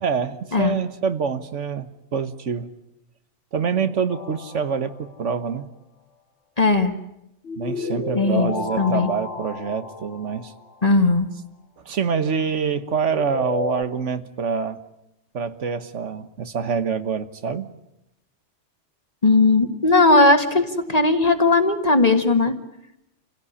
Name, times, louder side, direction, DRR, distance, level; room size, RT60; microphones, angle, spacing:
voice 1, 0.0-2.7 3.5-5.7 7.6-10.5 11.8-14.8 15.3-17.7, right 6 dB, 90° right, 11 dB, 1.6 m, -26 dB
sound 1, 4.1-5.2 7.4-10.7 13.1-13.8, left 4 dB, 85° left, 1.9 m, -31 dB
voice 2, 6.6-6.9 8.1-9.1 10.8-11.3 19.2-22.6, left 3 dB, 35° left, 6 dB, 1.7 m, -18 dB
28.0 x 17.0 x 9.9 m, 0.84 s
omnidirectional pair, 1.2 m